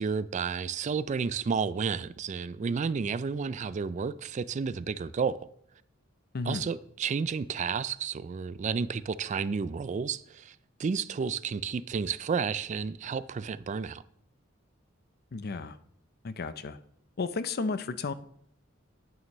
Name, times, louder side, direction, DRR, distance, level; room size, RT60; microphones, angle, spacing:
voice 1, 0.0-5.5 6.4-14.0, right 5 dB, 40° right, 0.3 m, -31 dB
voice 2, 6.3-6.7 15.3-15.8 16.2-16.8 17.2-18.1, left 4 dB, 55° left, 0.5 m, -33 dB
9.4 x 9.0 x 3.1 m
head